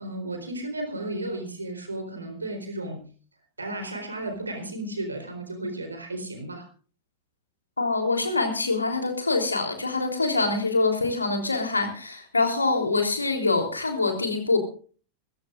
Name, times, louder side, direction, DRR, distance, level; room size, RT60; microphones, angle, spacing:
voice 1, 0.0-3.0 3.6-6.7, right 1 dB, 80° right, 6 dB, 4.0 m, -34 dB
voice 2, 7.8-14.6, left 3 dB, 80° left, 5 dB, 3.4 m, -25 dB
24.5 x 15.5 x 2.5 m, 0.40 s
figure-of-eight pair, 90°, 0 cm